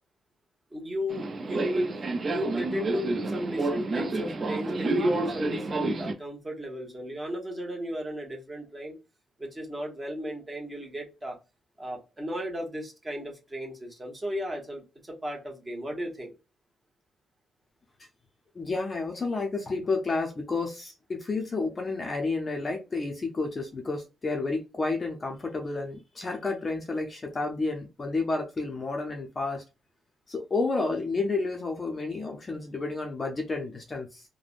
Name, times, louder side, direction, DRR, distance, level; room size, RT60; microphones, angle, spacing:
voice 1, 0.7-1.9 2.3-8.9 9.4-11.4 11.8-16.3, equal, 15° right, 1.1 m, -35 dB
Subway metro underground, 1.1-6.1, right 2 dB, 35° right, 0.5 m, -29 dB
voice 2, 18.6-29.6 30.3-34.2, left 3 dB, 25° left, 0.6 m, -31 dB
3.3 x 2.1 x 2.4 m
cardioid pair, 140°, 0 cm